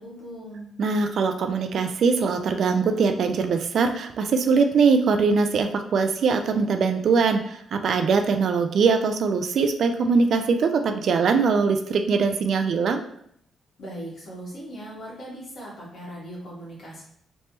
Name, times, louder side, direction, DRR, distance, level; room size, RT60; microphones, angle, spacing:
voice 1, 0.0-0.7 13.8-17.0, right 1 dB, 55° left, -5 dB, 1.5 m, -39 dB
voice 2, 0.8-13.0, right 5 dB, 55° right, 6 dB, 0.3 m, -22 dB
3.3 x 3.1 x 2.8 m, 0.68 s
cardioid pair, 145°, 0 cm